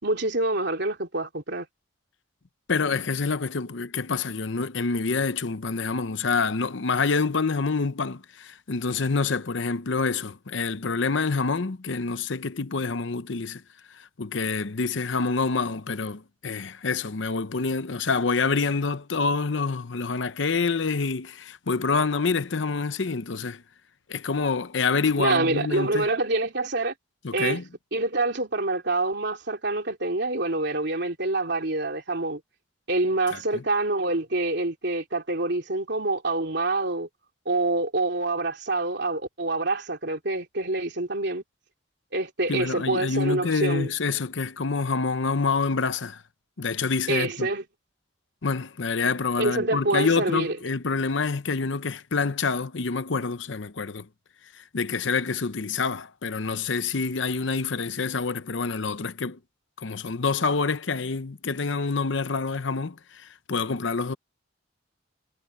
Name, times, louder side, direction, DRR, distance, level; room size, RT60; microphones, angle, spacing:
voice 1, 0.0-1.7 25.2-26.9 27.3-27.6 27.9-32.4 32.9-37.1 37.4-41.4 42.1-43.9 47.1-47.6 49.4-50.6, right 2 dB, 60° right, 3.3 m, -26 dB
voice 2, 2.7-13.6 13.9-23.6 24.1-26.1 27.2-27.6 33.3-33.6 42.5-46.2 46.6-47.5 48.4-54.1 54.7-59.4 59.8-63.0 63.5-64.2, left 4 dB, 65° left, 0.8 m, -27 dB
head